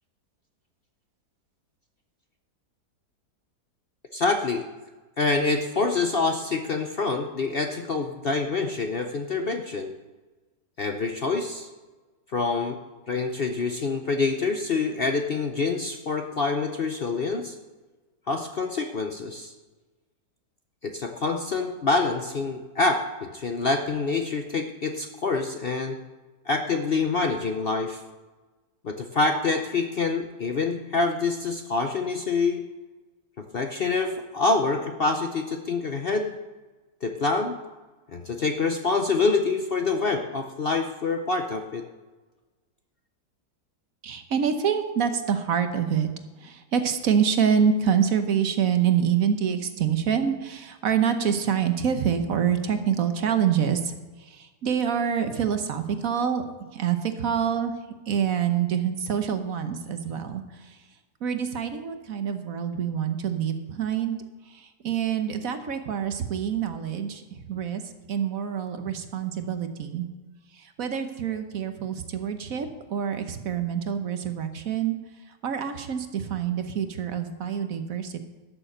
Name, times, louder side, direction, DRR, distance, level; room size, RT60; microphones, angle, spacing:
voice 1, 4.1-4.6 5.2-9.9 10.8-11.7 12.3-12.8 13.1-17.6 18.3-19.5 20.8-26.0 26.5-28.0 28.8-32.7 33.4-36.3 37.0-37.6 38.1-41.9, left 3 dB, 50° left, 5 dB, 0.7 m, -26 dB
voice 2, 44.0-46.1 46.4-53.9 54.2-56.4 56.7-57.7 58.1-60.8 61.2-64.2 64.5-67.8 68.1-70.1 70.5-74.9 75.4-78.2, right 8 dB, 60° right, 8 dB, 1.3 m, -26 dB
12.5 x 6.9 x 7.7 m, 1.2 s
omnidirectional pair, 1.7 m